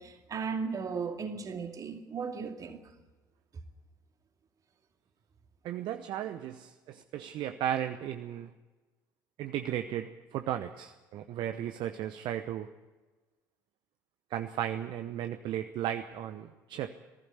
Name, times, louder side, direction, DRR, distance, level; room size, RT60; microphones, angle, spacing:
voice 1, 0.0-2.8, right 5 dB, 40° right, 2.5 m, -36 dB
voice 2, 5.6-8.5 9.4-12.7 14.3-16.9, right 11 dB, 55° right, 0.9 m, -35 dB
19.0 x 15.5 x 9.8 m
figure-of-eight pair, 55°, 10 cm